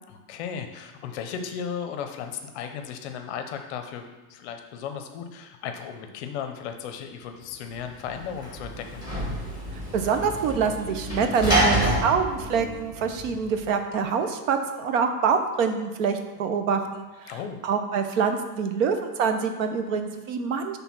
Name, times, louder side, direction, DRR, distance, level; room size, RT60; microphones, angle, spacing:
voice 1, 0.1-9.0 17.3-17.6, left 7 dB, 45° left, 6 dB, 0.6 m, -35 dB
Sliding door / Slam, 7.7-13.6, right 1 dB, 10° right, 1.4 m, -28 dB
voice 2, 9.9-17.0 17.6-20.8, right 6 dB, 55° right, 7 dB, 0.8 m, -25 dB
6.1 x 3.4 x 5.9 m, 1.2 s
supercardioid pair, 150°, 47 cm